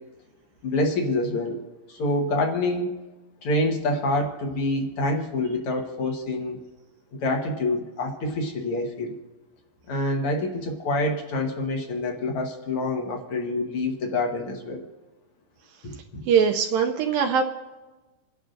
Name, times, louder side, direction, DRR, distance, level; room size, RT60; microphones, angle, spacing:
voice 1, 0.6-1.6 1.9-2.9 3.4-6.6 7.1-9.1 9.9-14.9 15.8-16.3, left 2 dB, 55° left, 2 dB, 1.6 m, -27 dB
voice 2, 16.3-17.4, right 6 dB, 80° right, 4 dB, 2.3 m, -21 dB
28.0 x 11.0 x 2.6 m, 1.2 s
omnidirectional pair, 4.4 m